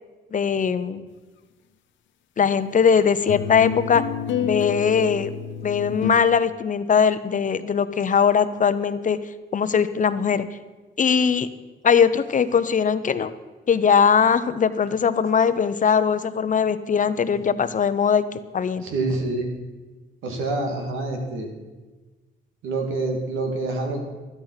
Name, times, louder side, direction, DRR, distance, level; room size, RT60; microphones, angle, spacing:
voice 1, 0.3-1.0 2.4-4.0 4.4-5.3 5.6-9.2 9.5-10.5 11.0-11.5 11.8-13.3 13.7-18.3 18.5-18.8, left 6 dB, 40° left, 13 dB, 0.8 m, -20 dB
sound 1, 3.3-6.1, left 8 dB, 70° left, 0.9 m, -28 dB
voice 2, 18.8-19.5 20.2-21.5 22.6-24.0, right 2 dB, 85° right, 2 dB, 2.6 m, -26 dB
12.5 x 12.0 x 5.9 m, 1.3 s
cardioid pair, 90°, 20 cm